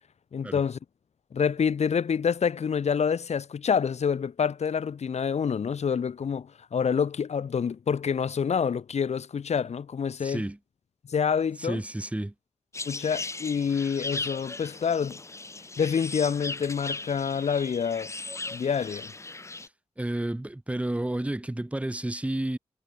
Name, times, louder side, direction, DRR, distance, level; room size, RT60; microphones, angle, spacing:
voice 1, 0.3-0.8 1.3-10.4 11.1-11.8 12.9-15.2 15.8-18.1 18.5-19.1, left 6 dB, 75° left, 3.8 m, -27 dB
voice 2, 10.2-10.6 11.6-12.3 20.0-22.6, right 1 dB, 10° right, 6.9 m, -31 dB
sound 1, 12.7-19.7, left 3 dB, 25° left, 2.8 m, -37 dB
wide cardioid pair, 160°, 11 cm